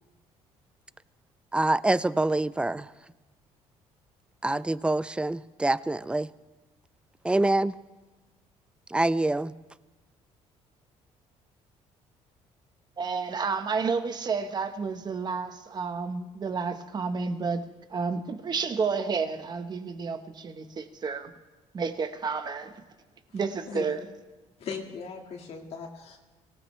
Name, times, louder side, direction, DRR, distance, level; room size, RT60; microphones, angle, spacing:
voice 1, 1.5-2.9 4.4-6.3 7.2-7.8 8.9-9.5, right 2 dB, 10° right, 0.4 m, -25 dB
voice 2, 13.0-17.6 17.9-21.3 21.7-22.7 23.3-24.0, right 5 dB, 35° right, 1.2 m, -30 dB
voice 3, 24.6-26.2, left 5 dB, 60° left, 2.0 m, -38 dB
25.0 x 17.5 x 3.3 m
cardioid pair, 110°, 12 cm